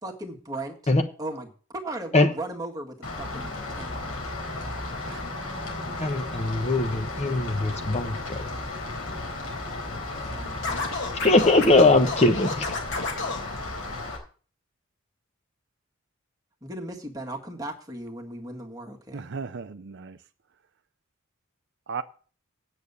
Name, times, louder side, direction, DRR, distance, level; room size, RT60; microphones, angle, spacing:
voice 1, 0.0-0.8 1.2-1.5 1.7-3.9 10.0-11.2 16.6-19.3, right 1 dB, 15° right, 0 dB, 1.8 m, -37 dB
Rain, 3.0-14.2, left 2 dB, 90° left, 4.2 m, -34 dB
voice 2, 6.0-8.4 11.2-12.7, left 2 dB, 30° left, 7 dB, 1.0 m, -21 dB
Scratching (performance technique), 10.6-13.4, left 3 dB, 60° left, 2.9 m, -30 dB
voice 3, 19.1-20.2 21.9-22.0, right 5 dB, 55° right, 11 dB, 0.5 m, -35 dB
9.1 x 6.7 x 8.3 m, 0.40 s
head